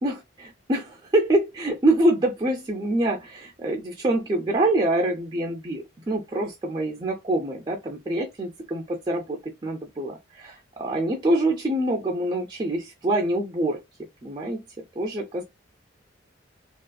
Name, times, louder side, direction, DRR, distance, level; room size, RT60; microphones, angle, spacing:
voice 1, 0.0-13.8 14.2-14.6 15.0-15.4, right 1 dB, 20° right, 0.4 m, -25 dB
2.6 x 2.4 x 2.2 m
head